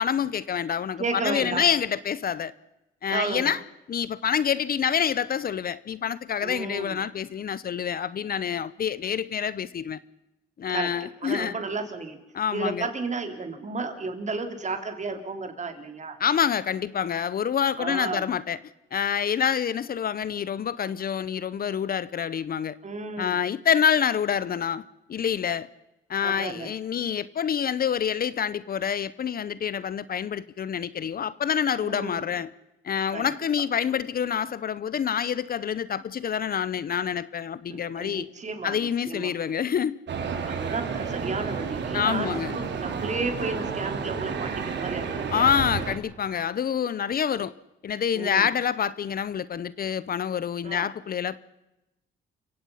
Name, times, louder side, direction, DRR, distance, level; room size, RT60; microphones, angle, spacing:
voice 1, 0.0-2.5 3.0-3.6 3.9-10.0 10.6-11.6 12.3-12.8 16.2-18.6 18.9-22.8 23.2-24.8 25.1-25.7 26.1-32.5 32.8-38.3 38.6-40.0 41.9-42.6 45.3-47.5 47.8-51.4, left 8 dB, 50° left, 0.8 m, -27 dB
voice 2, 1.0-1.6 3.1-3.5 6.4-7.0 10.7-10.9 11.2-12.2 12.5-16.2 17.8-18.3 22.8-23.4 26.2-26.7 31.8-32.3 33.1-33.4 37.7-39.3 40.4-45.5 48.1-48.5 50.6-50.9, right 3 dB, 35° right, 3.6 m, -33 dB
sound 1, 40.1-45.9, right 6 dB, 65° right, 3.8 m, -31 dB
29.5 x 16.5 x 5.7 m
cardioid pair, 90°, 20 cm